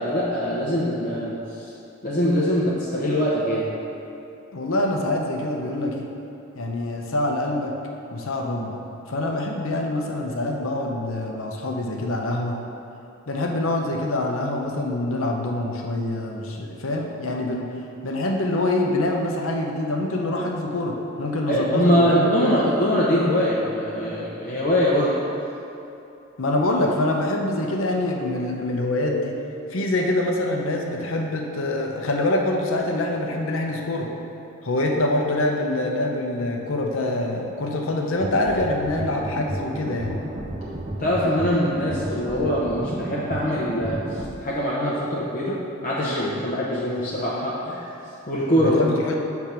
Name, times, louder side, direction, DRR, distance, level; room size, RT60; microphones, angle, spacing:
voice 1, 0.0-1.7 2.0-3.7 21.5-25.2 41.0-47.9 48.3-48.8, equal, 40° left, -7 dB, 0.8 m, -23 dB
voice 2, 4.5-6.1 6.5-7.7 8.1-8.8 9.1-12.6 13.3-22.5 26.4-29.3 29.7-34.1 34.6-40.2 48.5-49.2, left 1 dB, 75° left, 1 dB, 0.8 m, -25 dB
sound 1, 38.2-44.3, right 1 dB, 20° right, 0.5 m, -32 dB
6.7 x 3.5 x 5.9 m, 2.8 s
head